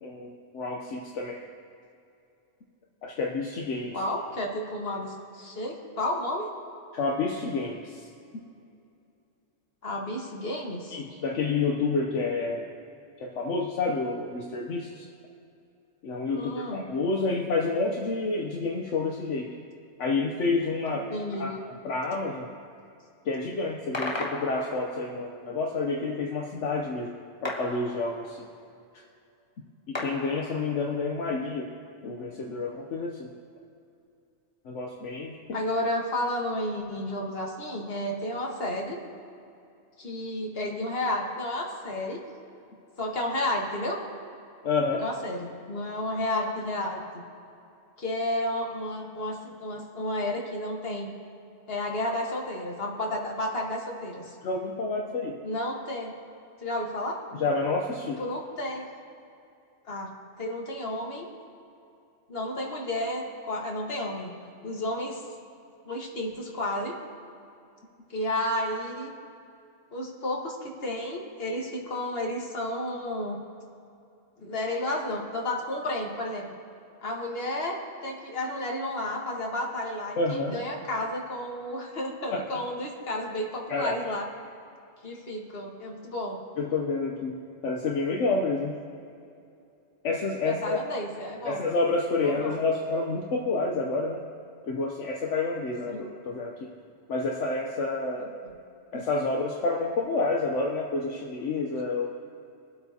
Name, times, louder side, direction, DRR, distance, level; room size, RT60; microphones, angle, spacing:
voice 1, 0.0-1.4 3.0-4.0 6.9-8.1 10.9-12.7 13.2-15.1 16.0-19.5 20.0-21.1 21.4-21.6 21.8-22.5 23.2-27.1 27.4-28.5 29.9-31.7 32.0-33.3 34.6-35.4 44.6-45.0 54.4-55.4 57.3-58.2 80.2-80.6 82.3-82.6 83.7-84.0 86.6-88.8 90.0-90.8 91.4-94.2 94.6-96.7 97.1-98.3 98.9-102.1, left 3 dB, 75° left, 0 dB, 1.2 m, -29 dB
voice 2, 3.9-6.5 9.8-11.0 16.4-16.9 21.1-21.5 35.5-39.0 40.0-42.2 43.0-44.0 45.0-47.2 48.0-51.1 51.7-54.4 55.4-56.2 56.6-57.2 58.2-58.8 59.9-60.1 60.4-61.3 62.3-64.3 64.6-65.2 65.9-66.9 68.1-69.1 69.9-73.4 74.4-76.5 77.0-84.3 85.0-86.4 90.4-91.6 92.2-92.6 95.9-96.1, left 1 dB, 50° left, -1 dB, 1.8 m, -32 dB
sound 1, 23.9-25.3 27.4-28.6 29.9-31.1, left 1 dB, 25° left, 1.2 m, -36 dB
24.0 x 8.4 x 2.8 m, 2.6 s
omnidirectional pair, 1.3 m